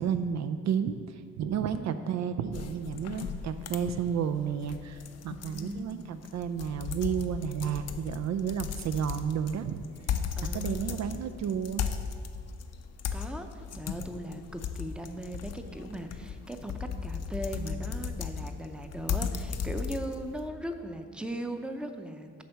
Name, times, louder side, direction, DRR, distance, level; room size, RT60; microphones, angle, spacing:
voice 1, 0.0-9.8 10.5-11.8, right 8 dB, 60° right, 10 dB, 0.4 m, -32 dB
voice 2, 1.8-2.2 5.3-6.2 10.4-11.6 13.1-22.4, right 1 dB, 5° right, 6 dB, 0.6 m, -39 dB
sound 1, 2.5-20.4, left 7 dB, 55° left, 0.6 m, -36 dB
9.1 x 3.4 x 6.5 m, 2.2 s
supercardioid pair, 60°, 31 cm